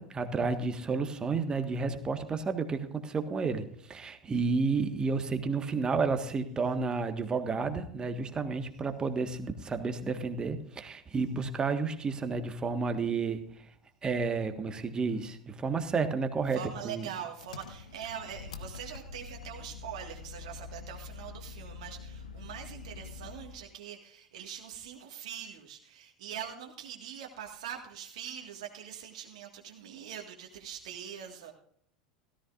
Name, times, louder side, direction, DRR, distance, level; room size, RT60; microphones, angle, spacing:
voice 1, 0.0-13.4 14.0-16.6 16.8-17.1, right 4 dB, 20° right, 8 dB, 1.5 m, -31 dB
voice 2, 16.5-31.5, right 9 dB, 60° right, 2 dB, 1.8 m, -43 dB
Engine, 17.4-23.7, left 5 dB, 70° left, 1.0 m, -45 dB
17.0 x 14.0 x 2.5 m, 0.64 s
figure-of-eight pair, 80°, 4 cm